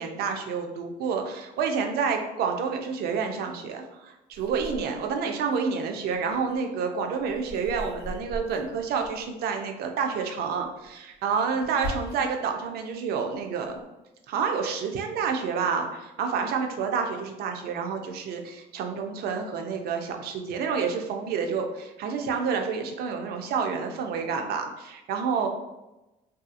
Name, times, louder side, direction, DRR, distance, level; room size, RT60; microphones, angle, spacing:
voice 1, 0.0-13.8 14.3-25.5, right 5 dB, 70° right, 4 dB, 0.4 m, -29 dB
sound 1, 4.3-5.6 6.0-9.6 10.6-12.5 12.9-13.8, equal, 90° left, 0.7 m, -41 dB
2.7 x 2.3 x 2.4 m, 0.99 s
cardioid pair, 110°, 17 cm